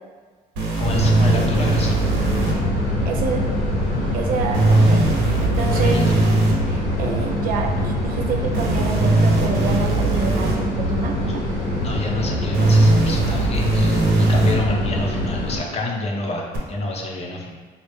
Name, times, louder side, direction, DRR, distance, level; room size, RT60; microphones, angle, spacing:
sound 1, 0.6-2.5 4.5-6.5 8.5-10.5 12.5-14.5 16.5-16.6, right 2 dB, 85° right, 0.8 m, -19 dB
sound 2, 0.8-15.6, left 1 dB, 85° left, 1.2 m, -24 dB
voice 1, 0.8-2.0 5.6-6.1 11.8-17.5, left 2 dB, 40° left, -1 dB, 0.6 m, -27 dB
voice 2, 3.0-3.4 4.1-6.0 6.7-11.4, right 5 dB, 60° right, 2 dB, 0.5 m, -27 dB
4.3 x 2.0 x 3.3 m, 1.5 s
cardioid pair, 110°, 17 cm